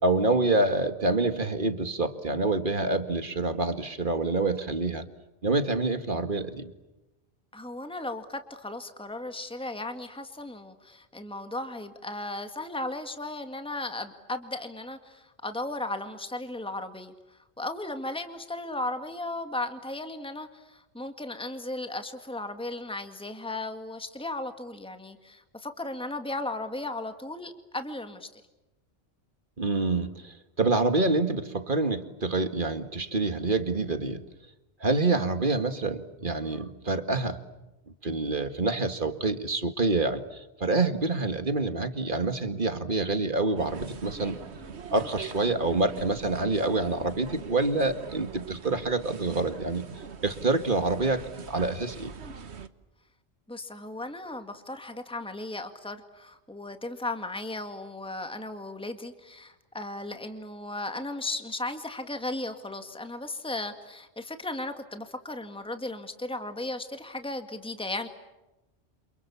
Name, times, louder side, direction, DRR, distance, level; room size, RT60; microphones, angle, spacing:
voice 1, 0.0-5.0 5.4-6.7 29.6-34.2 34.8-37.4 38.0-44.4 44.9-49.9 50.2-52.1, right 3 dB, 50° right, 9 dB, 2.1 m, -27 dB
voice 2, 7.5-28.4 53.5-68.1, left 2 dB, 5° left, 7 dB, 2.0 m, -36 dB
sound 1, 43.6-52.7, right 6 dB, 85° right, 1.5 m, -43 dB
29.0 x 28.5 x 7.1 m, 1.0 s
omnidirectional pair, 1.1 m